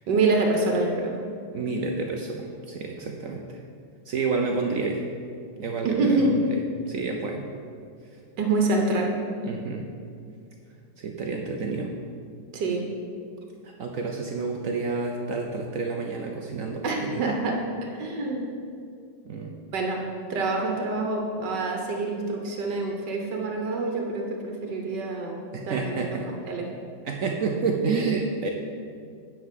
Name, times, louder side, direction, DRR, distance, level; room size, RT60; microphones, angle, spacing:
voice 1, 0.1-1.2 5.8-6.3 8.4-9.1 12.5-12.9 16.8-18.5 19.7-20.0 20.3-25.4 25.7-26.2 26.5-26.7, right 3 dB, 85° right, 1 dB, 1.6 m, -26 dB
voice 2, 1.5-3.6 4.1-5.0 5.6-6.6 6.9-7.5 9.4-9.8 11.0-11.9 13.8-16.8 17.1-17.2 19.2-19.5 25.5-26.3 27.0-28.5, right 4 dB, 60° right, 1 dB, 0.9 m, -29 dB
9.5 x 4.6 x 7.4 m, 2.3 s
omnidirectional pair, 1.8 m